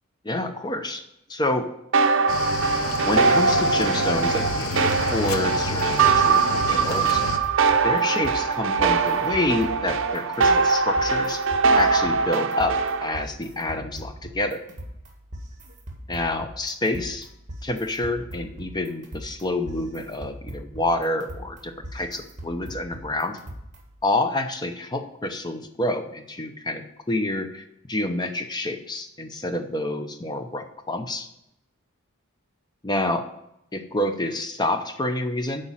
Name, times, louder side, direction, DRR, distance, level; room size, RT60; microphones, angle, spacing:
voice 1, 0.2-1.0 1.3-1.7 3.0-7.2 7.8-11.4 11.7-14.6 16.1-17.3 17.6-23.4 24.0-31.3 32.8-33.2 33.7-35.7, left 2 dB, 20° left, 7 dB, 0.6 m, -28 dB
sound 1, 1.9-13.2, right 4 dB, 60° right, 0.6 m, -22 dB
Cricket / Waves surf, 2.3-7.4, left 3 dB, 80° left, 0.9 m, -30 dB
sound 2, 4.4-24.0, equal, 35° right, 1.7 m, -41 dB
8.2 x 5.1 x 7.4 m, 0.79 s
head